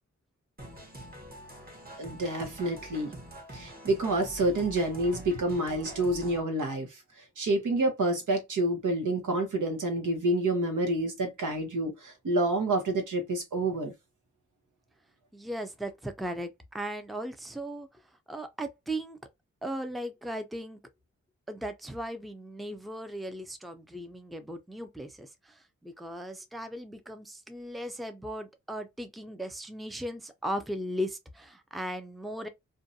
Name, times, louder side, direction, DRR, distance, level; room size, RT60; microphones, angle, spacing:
sound 1, 0.6-6.4, right 1 dB, 30° right, 1.1 m, -45 dB
voice 1, 2.0-3.2 3.5-7.0 7.4-13.9, right 2 dB, 85° right, 0.9 m, -28 dB
voice 2, 15.3-17.9 18.3-19.2 19.6-20.8 21.5-32.5, equal, ahead, 0.5 m, -37 dB
2.5 x 2.2 x 2.6 m
cardioid pair, 50°, 30 cm